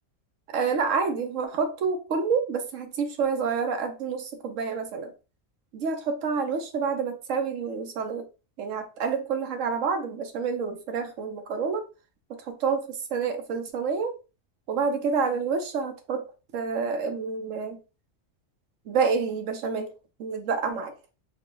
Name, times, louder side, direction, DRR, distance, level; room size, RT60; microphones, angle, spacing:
voice 1, 0.5-5.1 5.7-8.3 8.6-11.8 12.3-14.2 14.7-16.2 16.5-17.8 18.9-19.9 20.2-20.9, right 5 dB, 85° right, 1.2 m, -28 dB
4.6 x 2.2 x 3.8 m
omnidirectional pair, 1.3 m